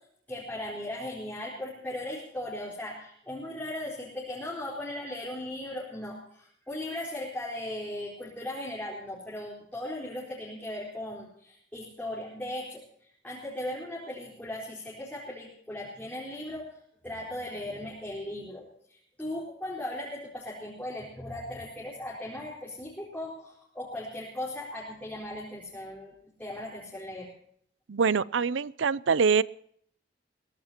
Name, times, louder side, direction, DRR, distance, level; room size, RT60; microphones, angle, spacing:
voice 1, 0.3-12.8 13.2-16.8 17.0-26.1 26.4-27.3, left 1 dB, 10° left, -6 dB, 4.2 m, -38 dB
voice 2, 27.9-29.4, right 5 dB, 70° right, 20 dB, 0.5 m, -24 dB
22.5 x 17.0 x 2.9 m, 0.66 s
head